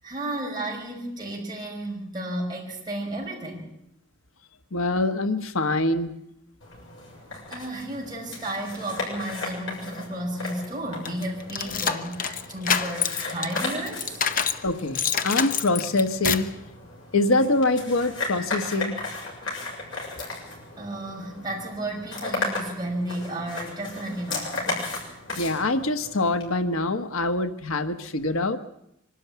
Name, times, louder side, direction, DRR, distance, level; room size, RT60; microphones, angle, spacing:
voice 1, 0.0-3.7 7.5-14.2 20.8-24.8, right 1 dB, 20° right, -2 dB, 5.7 m, -33 dB
voice 2, 4.7-6.1 14.6-16.5 17.1-18.9 25.4-28.6, left 2 dB, 90° left, 8 dB, 1.3 m, -24 dB
sound 1, 6.6-26.5, left 3 dB, 70° left, 7.3 m, -36 dB
sound 2, 11.1-14.6 15.0-16.6, left 7 dB, 40° left, 0.9 m, -27 dB
24.5 x 13.0 x 9.3 m, 0.81 s
head